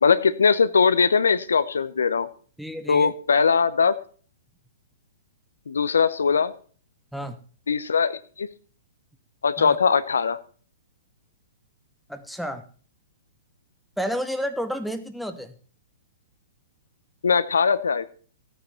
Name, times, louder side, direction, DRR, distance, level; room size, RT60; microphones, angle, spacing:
voice 1, 0.0-2.3 2.9-3.9 5.7-6.5 7.7-8.5 9.4-10.4 17.2-18.1, left 5 dB, 80° left, 14 dB, 0.7 m, -20 dB
voice 2, 2.6-3.1 7.1-7.4 9.6-9.8 12.1-12.6 14.0-15.5, equal, ahead, 9 dB, 1.1 m, -31 dB
14.0 x 9.1 x 4.4 m, 0.42 s
hypercardioid pair, 115°, 0 cm